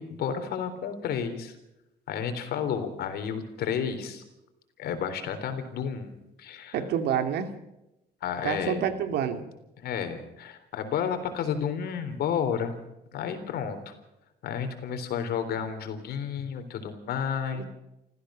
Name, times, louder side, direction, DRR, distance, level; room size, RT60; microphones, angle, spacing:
voice 1, 0.0-1.6 2.1-4.2 4.8-6.8 8.2-8.8 9.8-12.7 13.1-13.9 14.4-17.6, left 7 dB, 70° left, 8 dB, 3.7 m, -31 dB
voice 2, 6.7-7.5 8.4-9.4 17.6-17.7, right 8 dB, 75° right, 8 dB, 2.5 m, -28 dB
28.0 x 15.0 x 6.4 m, 0.91 s
cardioid pair, 110°, 17 cm